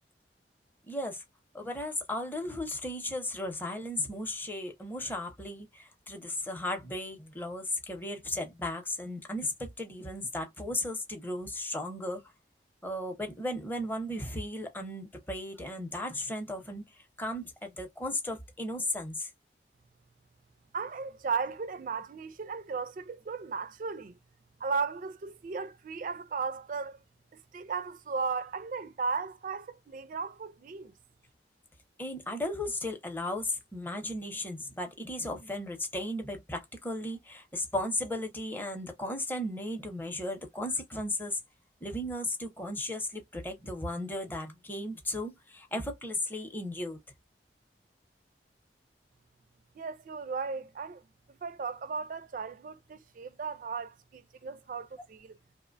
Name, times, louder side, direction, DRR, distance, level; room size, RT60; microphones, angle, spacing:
voice 1, 0.9-1.2 1.5-12.2 12.8-19.3 32.0-41.4 41.8-47.0, left 1 dB, 10° left, 0.6 m, -35 dB
voice 2, 20.7-24.1 24.6-27.0 27.5-30.9 49.8-51.0 51.3-55.4, right 5 dB, 50° right, 0.3 m, -36 dB
2.8 x 2.1 x 2.4 m
head